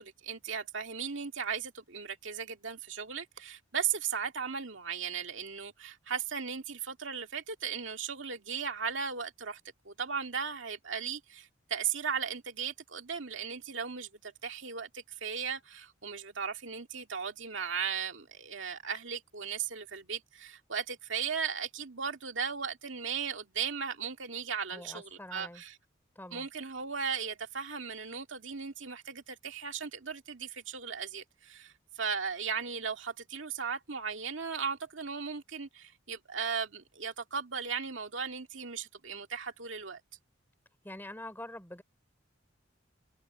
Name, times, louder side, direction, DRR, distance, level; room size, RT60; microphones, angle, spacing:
voice 1, 0.0-9.6 9.9-25.8 26.3-40.0, right 6 dB, 75° right, 2.2 m, -37 dB
voice 2, 24.7-25.6 26.2-26.5 40.8-41.8, left 1 dB, 10° left, 3.5 m, -45 dB
head